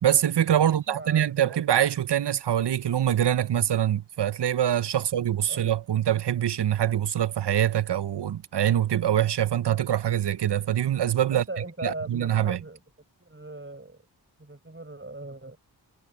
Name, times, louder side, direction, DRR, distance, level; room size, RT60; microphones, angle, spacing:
voice 1, 0.0-11.4 11.8-12.6, right 10 dB, 85° right, 0.6 m, -24 dB
voice 2, 0.6-1.6 5.5-5.7 8.9-9.0 11.3-12.8 13.2-14.0 14.4-15.6, right 2 dB, 30° right, 6.6 m, -39 dB
wide cardioid pair, 60°, 40 cm